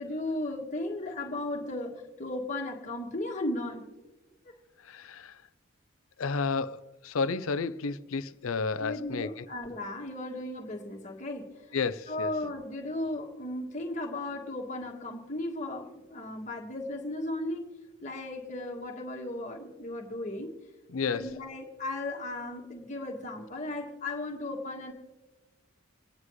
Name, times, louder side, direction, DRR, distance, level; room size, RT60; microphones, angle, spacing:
voice 1, 0.0-3.9 4.4-4.5 8.8-11.8 12.1-17.7 18.0-20.5 21.1-24.9, left 1 dB, 35° left, 1.7 m, -36 dB
voice 2, 4.8-5.4 6.2-9.4 11.7-12.3 20.9-21.3, left 4 dB, 80° left, 0.6 m, -32 dB
27.5 x 9.8 x 3.1 m
head